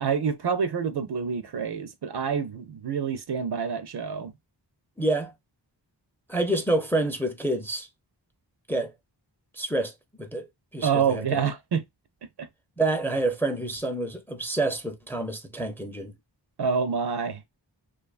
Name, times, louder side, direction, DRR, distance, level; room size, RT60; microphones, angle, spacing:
voice 1, 0.0-4.3 10.8-11.8 12.4-12.5 16.6-17.5, right 6 dB, 60° right, 0.5 m, -27 dB
voice 2, 5.0-5.3 6.3-7.9 8.7-8.9 9.5-9.9 10.2-10.5 10.7-11.4 12.8-16.1, right 2 dB, 5° left, 0.4 m, -27 dB
2.5 x 2.3 x 2.3 m
wide cardioid pair, 60°, 44 cm